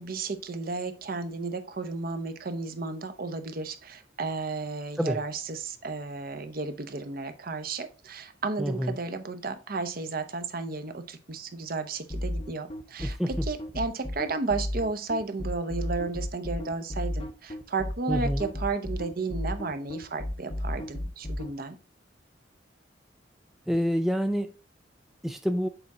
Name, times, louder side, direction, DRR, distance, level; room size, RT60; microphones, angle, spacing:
voice 1, 0.0-21.7, right 3 dB, 50° right, 0.8 m, -33 dB
voice 2, 8.6-9.0 13.0-13.5 18.1-18.4 23.7-24.5 25.2-25.7, equal, ahead, 0.3 m, -27 dB
sound 1, 12.1-21.5, left 1 dB, 30° left, 0.7 m, -33 dB
6.9 x 4.2 x 3.6 m
head